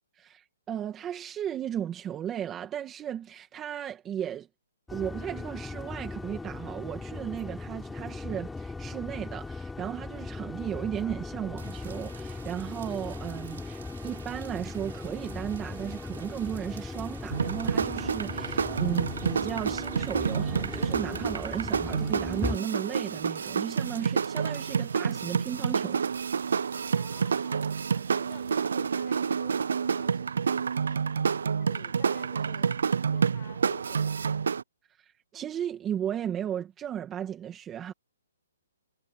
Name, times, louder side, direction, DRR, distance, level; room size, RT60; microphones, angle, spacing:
voice 1, 0.1-4.5 4.9-26.0 34.9-37.9, right 10 dB, 15° right, 2.0 m, -35 dB
sound 1, 4.9-22.6, left 3 dB, 5° left, 3.5 m, -38 dB
sound 2, 11.6-28.7, right 8 dB, 60° right, 6.6 m, -51 dB
sound 3, 17.3-34.6, right 6 dB, 75° right, 0.4 m, -29 dB
voice 2, 26.8-31.0 31.6-32.7 33.1-34.3, left 34 dB, 25° left, 7.4 m, -51 dB
hypercardioid pair, 165°, 0 cm